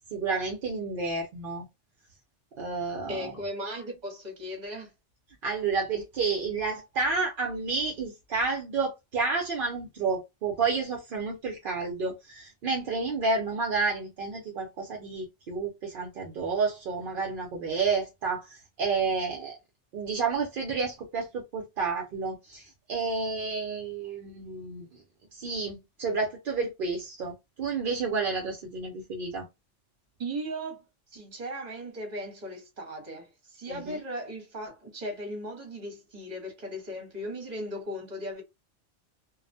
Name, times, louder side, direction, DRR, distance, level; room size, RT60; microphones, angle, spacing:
voice 1, 0.1-1.7 2.6-3.3 5.4-19.6 19.9-24.8 25.3-29.4 33.7-34.0, right 4 dB, 60° right, 0.6 m, -30 dB
voice 2, 3.1-4.9 30.2-30.8 31.1-38.4, equal, 40° right, 1.0 m, -37 dB
2.3 x 2.1 x 2.5 m
omnidirectional pair, 1.3 m